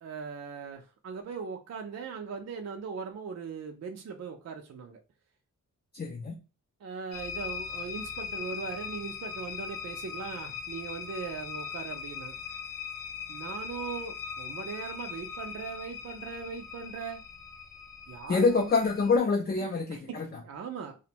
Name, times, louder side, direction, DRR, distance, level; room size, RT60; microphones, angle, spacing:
voice 1, 0.0-5.0 6.8-12.4 13.3-17.2 18.1-18.7 19.9-21.0, right 5 dB, 55° right, 0.4 m, -39 dB
voice 2, 5.9-6.4 18.3-20.4, left 4 dB, 30° left, 0.4 m, -26 dB
sound 1, 7.1-19.2, left 7 dB, 75° left, 0.6 m, -40 dB
2.5 x 2.1 x 2.8 m
wide cardioid pair, 100°, 33 cm